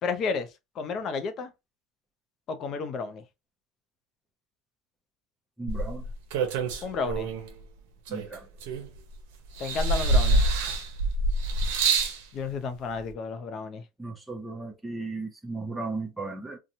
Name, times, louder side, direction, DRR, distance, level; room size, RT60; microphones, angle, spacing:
voice 1, 0.0-0.5 0.8-1.5 2.5-3.2 6.8-7.3 9.6-10.4 12.3-13.8, left 5 dB, 45° left, 0.5 m, -32 dB
voice 2, 5.6-6.0 8.1-8.5 14.0-16.6, right 3 dB, 5° right, 0.6 m, -35 dB
sound 1, 5.7-7.5 8.1-9.1 9.6-12.2 13.1-13.2, right 2 dB, 80° right, 0.7 m, -26 dB
2.8 x 2.2 x 2.6 m
supercardioid pair, 115°, 0 cm